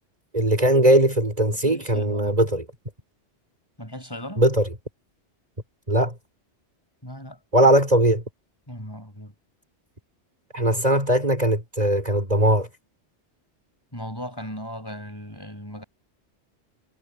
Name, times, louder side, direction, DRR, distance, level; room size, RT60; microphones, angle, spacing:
voice 1, 0.3-2.6 4.4-4.7 5.9-6.1 7.5-8.2 10.5-12.7, right 1 dB, 35° right, 4.5 m, -19 dB
voice 2, 1.5-2.4 3.8-4.4 7.0-7.4 8.7-9.3 13.9-15.8, equal, 20° left, 5.8 m, -37 dB
omnidirectional pair, 1.2 m